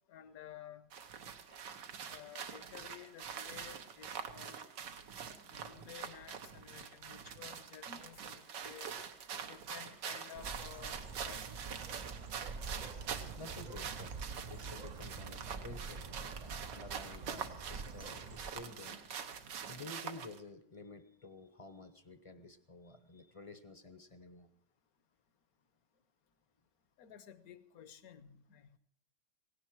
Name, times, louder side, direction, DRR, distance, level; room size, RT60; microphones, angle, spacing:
voice 1, 0.1-0.9 2.1-4.7 5.4-8.9 9.4-11.6 27.0-28.8, left 9 dB, 65° left, 14 dB, 1.3 m, -53 dB
sound 1, 0.9-20.4, right 7 dB, 90° right, 1.8 m, -45 dB
voice 2, 1.3-1.7 3.3-3.7 9.3-9.5 12.8-19.0 19.7-24.5, left 3 dB, 30° left, 11 dB, 0.7 m, -52 dB
Bird, 10.3-18.5, right 4 dB, 50° right, 0.5 m, -47 dB
18.0 x 16.5 x 4.7 m, 0.65 s
omnidirectional pair, 1.8 m